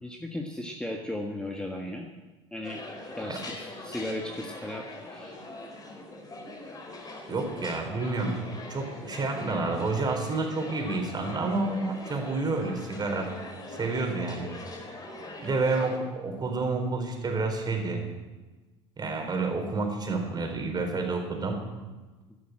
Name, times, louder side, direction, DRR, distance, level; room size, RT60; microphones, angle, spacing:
voice 1, 0.0-2.1 2.5-2.8 3.1-5.4, left 1 dB, 5° left, 2 dB, 1.5 m, -36 dB
sound 1, 2.6-16.0, left 2 dB, 25° left, 3.7 m, -42 dB
voice 2, 7.3-13.3 13.7-14.5 15.4-18.0 19.0-21.6, right 3 dB, 25° right, 3 dB, 4.1 m, -29 dB
13.0 x 12.5 x 7.7 m, 1.2 s
figure-of-eight pair, 70°, 15 cm